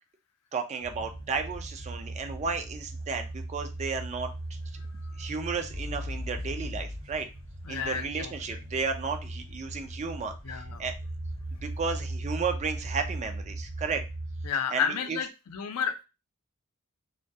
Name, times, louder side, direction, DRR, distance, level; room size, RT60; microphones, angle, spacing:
voice 1, 0.5-4.6 5.2-7.3 7.7-10.9 11.6-14.0 14.7-15.2, right 5 dB, 30° right, 6 dB, 0.3 m, -33 dB
sound 1, 0.8-14.5, right 1 dB, 60° right, 0.9 m, -38 dB
voice 2, 7.6-8.3 10.4-10.9 14.4-16.0, left 7 dB, 80° left, 8 dB, 0.5 m, -31 dB
2.2 x 2.2 x 2.6 m, 0.28 s
head